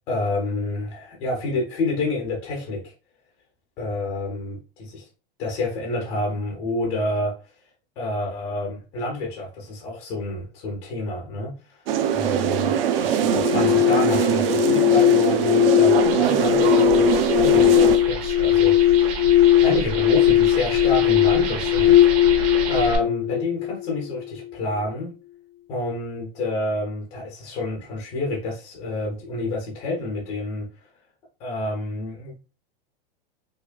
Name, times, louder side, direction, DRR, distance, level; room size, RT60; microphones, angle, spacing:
voice 1, 0.0-2.8 3.8-5.0 5.4-7.3 8.0-11.8 12.1-19.0 19.6-22.0 22.7-25.1 25.7-30.7 31.4-32.4, left 2 dB, 15° left, 0.3 m, -28 dB
sound 1, 11.9-18.0, right 8 dB, 75° right, 0.6 m, -22 dB
sound 2, 13.2-24.3, left 13 dB, 75° left, 0.5 m, -19 dB
sound 3, 15.9-23.0, right 3 dB, 40° right, 0.7 m, -31 dB
4.4 x 2.3 x 2.2 m
supercardioid pair, 165°, 29 cm